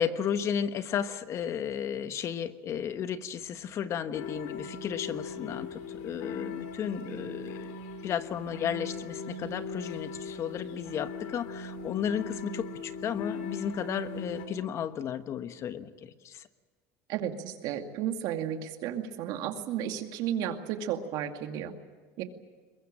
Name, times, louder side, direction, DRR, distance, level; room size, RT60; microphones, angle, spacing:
voice 1, 0.0-5.7 6.0-7.7 8.0-16.4, left 8 dB, 40° left, 11 dB, 1.2 m, -33 dB
sound 1, 4.1-14.5, left 4 dB, 80° left, 3.8 m, -39 dB
voice 2, 17.1-21.7 22.2-22.3, right 10 dB, 60° right, 6 dB, 2.3 m, -33 dB
22.5 x 21.5 x 8.9 m, 1.4 s
supercardioid pair, 130°, 8 cm